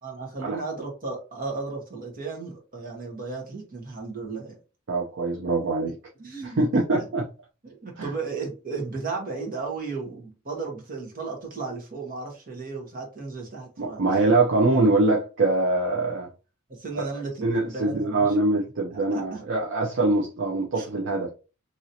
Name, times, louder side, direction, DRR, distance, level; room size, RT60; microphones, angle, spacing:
voice 1, 0.0-4.6 6.2-7.1 7.6-14.0 16.7-18.4 19.1-19.4 20.7-20.9, right 4 dB, 40° right, 1.2 m, -35 dB
voice 2, 4.9-6.0 6.4-7.2 8.0-8.1 13.8-16.3 16.9-17.0 17.4-21.3, right 2 dB, 55° right, 0.6 m, -23 dB
3.0 x 2.7 x 2.8 m
head